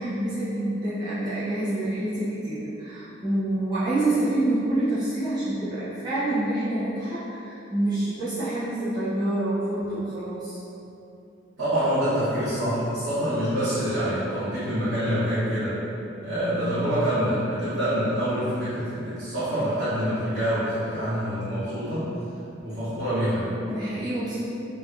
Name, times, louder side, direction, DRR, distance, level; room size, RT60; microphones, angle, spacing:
voice 1, 0.0-10.6 23.7-24.4, right 1 dB, 20° right, -14 dB, 0.8 m, -27 dB
voice 2, 11.6-15.7 16.2-22.1 22.6-23.5, equal, 65° right, -15 dB, 1.3 m, -26 dB
3.1 x 2.5 x 2.6 m, 2.9 s
head